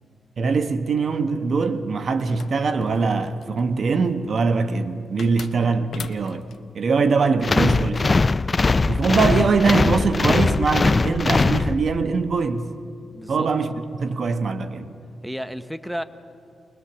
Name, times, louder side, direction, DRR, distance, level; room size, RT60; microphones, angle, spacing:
voice 1, 0.4-6.5 6.7-8.3 8.9-12.7 13.3-14.9, right 4 dB, 60° right, 1.0 m, -22 dB
sound 1, 2.2-3.6 5.2-6.6, left 7 dB, 70° left, 0.7 m, -39 dB
sound 2, 7.4-12.2, left 3 dB, 35° left, 0.4 m, -20 dB
voice 2, 13.1-13.5 15.2-16.0, equal, ahead, 0.9 m, -32 dB
21.0 x 21.0 x 7.0 m
cardioid pair, 70°, 0 cm